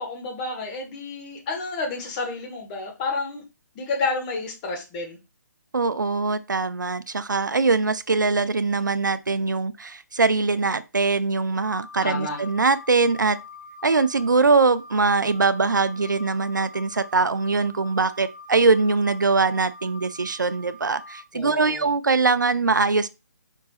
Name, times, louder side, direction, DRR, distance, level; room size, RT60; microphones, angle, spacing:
voice 1, 0.0-3.4 3.7-5.2 12.0-12.4 21.3-21.9, left 3 dB, 25° left, 1.5 m, -30 dB
voice 2, 5.7-13.4 13.8-23.1, right 4 dB, 80° right, 0.5 m, -22 dB
Wind instrument woodwind instrument, 11.6-21.2, left 1 dB, 60° left, 3.0 m, -44 dB
4.8 x 4.6 x 2.4 m
figure-of-eight pair, 140°, 10 cm